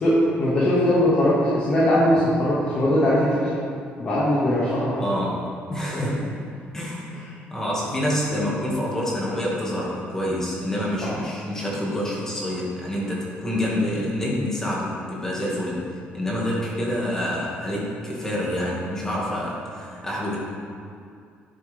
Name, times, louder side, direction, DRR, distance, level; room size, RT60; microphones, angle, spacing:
voice 1, 0.0-3.5 4.0-5.0 5.9-6.2 11.0-11.1, left 1 dB, 35° left, -9 dB, 1.9 m, -20 dB
voice 2, 5.0-6.3 6.7-7.2 7.5-15.8 16.1-20.4, left 1 dB, 15° left, -5 dB, 2.0 m, -27 dB
10.0 x 7.8 x 3.5 m, 2.3 s
cardioid pair, 150°, 4 cm